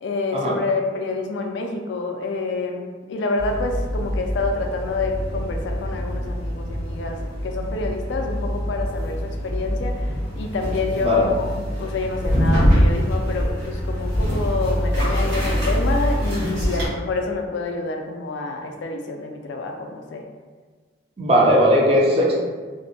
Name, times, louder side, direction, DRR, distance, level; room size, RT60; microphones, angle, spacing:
voice 1, 0.0-20.3, left 3 dB, 75° left, 4 dB, 0.3 m, -27 dB
sound 1, 3.4-16.9, equal, 65° right, 1.1 m, -24 dB
voice 2, 21.2-22.4, equal, 30° right, -3 dB, 0.4 m, -18 dB
2.6 x 2.1 x 2.6 m, 1.5 s
head